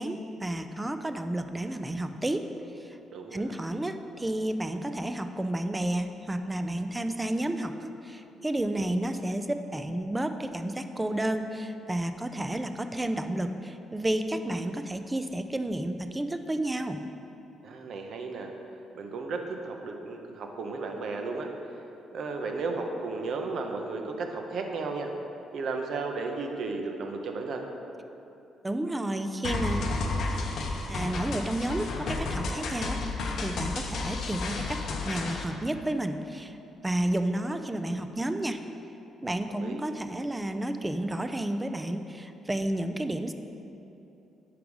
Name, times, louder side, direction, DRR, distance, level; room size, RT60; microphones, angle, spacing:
voice 1, 0.0-2.4 2.8-3.0 3.3-17.0 28.6-29.9 30.9-33.0 33.4-36.6 36.8-38.6 39.2-43.3, right 1 dB, 15° right, 8 dB, 0.3 m, -31 dB
voice 2, 3.1-3.5 17.6-18.5 18.9-21.5 22.1-25.1 25.5-27.6 39.5-39.8, right 3 dB, 65° right, 3 dB, 0.6 m, -34 dB
sound 1, 29.4-35.4, left 3 dB, 70° left, 0.6 m, -32 dB
4.8 x 4.7 x 5.3 m, 2.9 s
cardioid pair, 90°, 0 cm